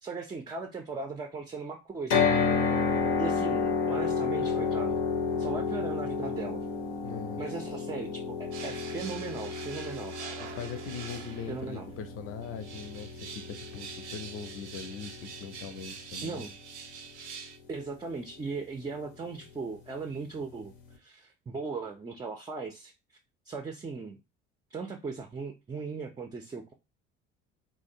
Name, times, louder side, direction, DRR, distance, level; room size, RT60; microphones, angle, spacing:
voice 1, 0.0-2.5 2.9-5.0 5.4-6.7 7.4-10.2 11.5-11.9 16.2-16.5 17.7-22.9 23.5-24.2 24.7-26.7, right 4 dB, 15° right, 0.3 m, -38 dB
sound 1, 2.1-16.2, left 5 dB, 80° left, 0.7 m, -31 dB
voice 2, 7.0-7.4 10.5-13.1 13.3-16.4, left 6 dB, 40° left, 0.5 m, -41 dB
sound 2, 8.5-11.8 12.4-17.6, right 6 dB, 90° right, 0.5 m, -45 dB
2.7 x 2.0 x 2.6 m
hypercardioid pair, 55°, 34 cm